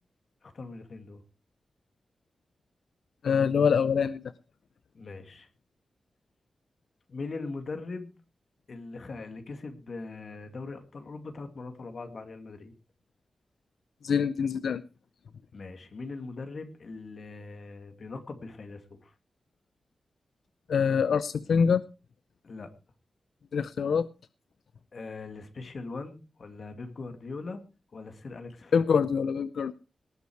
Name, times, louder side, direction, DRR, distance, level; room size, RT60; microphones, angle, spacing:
voice 1, 0.4-1.2 4.9-5.5 7.1-8.1 8.7-12.7 15.5-19.1 22.4-22.7 24.9-27.6 27.9-28.7, left 3 dB, 55° left, 7 dB, 2.5 m, -40 dB
voice 2, 3.2-4.2 14.0-14.8 20.7-21.8 23.5-24.1 28.7-29.7, left 6 dB, 90° left, 15 dB, 0.6 m, -25 dB
19.0 x 8.4 x 4.7 m, 0.32 s
wide cardioid pair, 130°, 0 cm